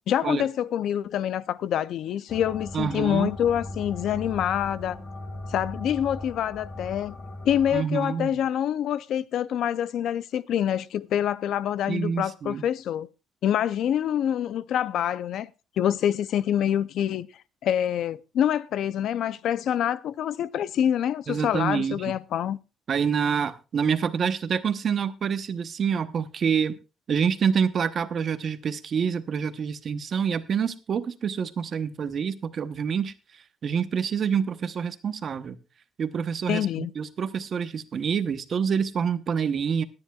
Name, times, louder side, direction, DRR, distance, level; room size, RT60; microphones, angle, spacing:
voice 1, 0.0-5.0 5.5-7.1 7.4-13.1 13.4-15.5 15.8-17.3 17.6-22.6 36.5-36.9, left 10 dB, 65° left, 0.5 m, -26 dB
sound 1, 2.3-7.8, left 2 dB, 35° left, 2.0 m, -38 dB
voice 2, 2.7-3.3 7.7-8.4 11.9-12.6 21.3-22.1 22.9-26.7 27.1-33.1 33.6-35.6 36.0-36.7 37.0-39.8, right 7 dB, 45° right, 0.9 m, -27 dB
21.5 x 9.8 x 2.4 m
cardioid pair, 130°, 0 cm